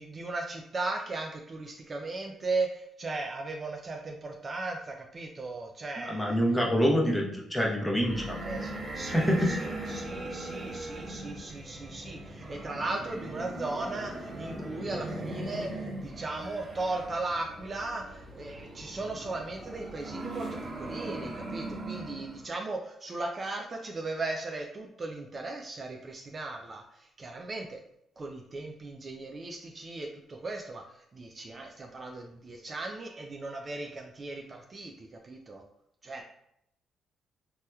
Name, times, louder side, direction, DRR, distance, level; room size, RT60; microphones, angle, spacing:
voice 1, 0.0-6.4 8.4-27.8 28.2-30.8 31.1-35.6 36.0-36.2, right 3 dB, 35° right, 2 dB, 0.3 m, -37 dB
voice 2, 6.0-8.4 9.1-9.6, equal, 5° left, -2 dB, 0.8 m, -26 dB
sound 1, 8.0-22.5, right 1 dB, 65° right, 1.2 m, -39 dB
3.3 x 2.8 x 2.2 m, 0.76 s
cardioid pair, 90°, 0 cm